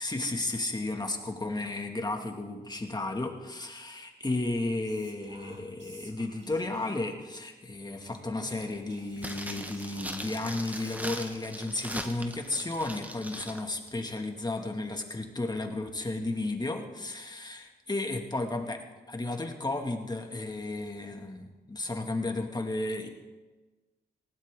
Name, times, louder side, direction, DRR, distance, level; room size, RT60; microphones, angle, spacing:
voice 1, 0.0-23.1, left 2 dB, 25° left, 3 dB, 2.3 m, -33 dB
Whispering, 4.8-7.1 8.0-12.4, right 2 dB, 40° right, 4.1 m, -53 dB
sound 1, 9.2-13.6 13.9-14.0, right 1 dB, 10° right, 1.6 m, -40 dB
19.5 x 17.5 x 3.9 m, 1.2 s
cardioid pair, 85°, 18 cm